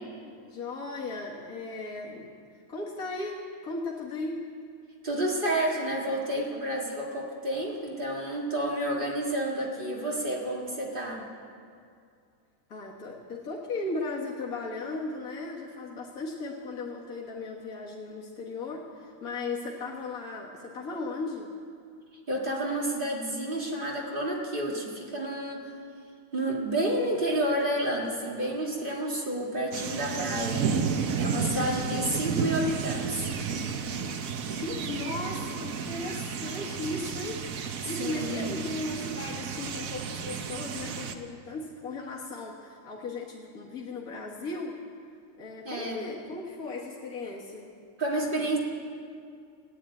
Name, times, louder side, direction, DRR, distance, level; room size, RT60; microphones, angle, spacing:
voice 1, 0.5-2.3 2.7-4.5 12.7-21.5 31.7-32.0 34.6-44.8 45.4-47.7, left 3 dB, 90° left, -3 dB, 1.9 m, -36 dB
voice 2, 5.0-11.3 22.3-25.7 26.3-30.6 31.2-33.3 38.0-38.5 45.6-46.0 48.0-48.6, right 1 dB, 40° right, -2 dB, 2.2 m, -30 dB
sound 1, 29.7-41.2, right 6 dB, 75° right, 1.3 m, -32 dB
16.0 x 9.6 x 8.8 m, 2.3 s
omnidirectional pair, 1.5 m